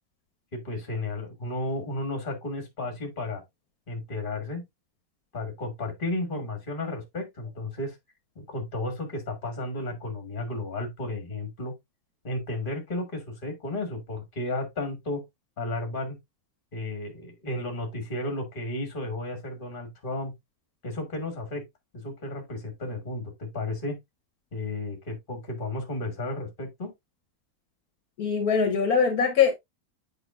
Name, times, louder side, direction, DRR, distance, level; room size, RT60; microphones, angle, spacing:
voice 1, 0.5-3.4 3.9-4.6 5.3-8.0 8.4-11.7 12.2-15.2 15.6-16.2 16.7-20.3 20.8-21.6 22.0-24.0 24.5-26.9, left 2 dB, 35° left, 1.8 m, -33 dB
voice 2, 28.2-29.5, left 6 dB, 70° left, 1.4 m, -22 dB
8.0 x 5.1 x 2.4 m
omnidirectional pair, 1.7 m